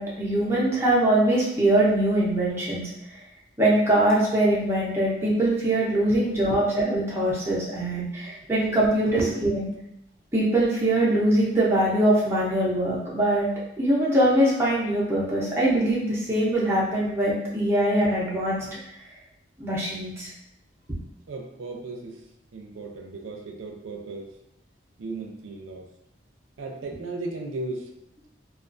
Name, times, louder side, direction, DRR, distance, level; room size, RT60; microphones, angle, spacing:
voice 1, 0.0-2.8 3.6-9.7 10.3-13.5 13.8-18.6 19.6-20.3, right 1 dB, 15° right, -7 dB, 0.6 m, -22 dB
voice 2, 21.3-22.2 22.5-24.3 25.0-25.9 26.6-27.9, right 2 dB, 85° right, 2 dB, 0.4 m, -35 dB
2.3 x 2.3 x 2.4 m, 0.83 s
head